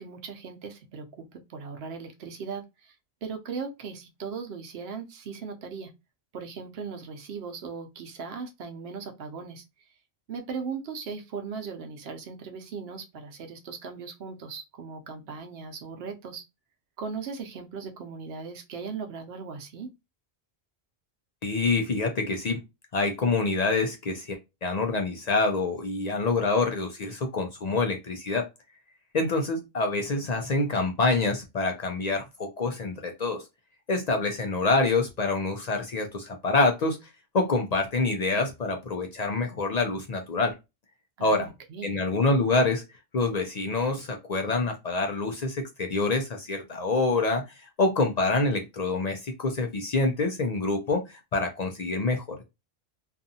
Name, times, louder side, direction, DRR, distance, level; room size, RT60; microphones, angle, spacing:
voice 1, 0.0-2.9 3.2-5.9 6.3-9.6 10.3-16.4 17.0-19.9 41.2-42.0, right 5 dB, 80° right, 0.9 m, -38 dB
voice 2, 21.4-22.6 22.9-28.5 29.1-33.4 33.9-37.0 37.3-40.5 41.2-41.5 41.8-42.8 43.1-52.4, left 3 dB, 50° left, 0.5 m, -26 dB
2.6 x 2.4 x 2.6 m
omnidirectional pair, 1.1 m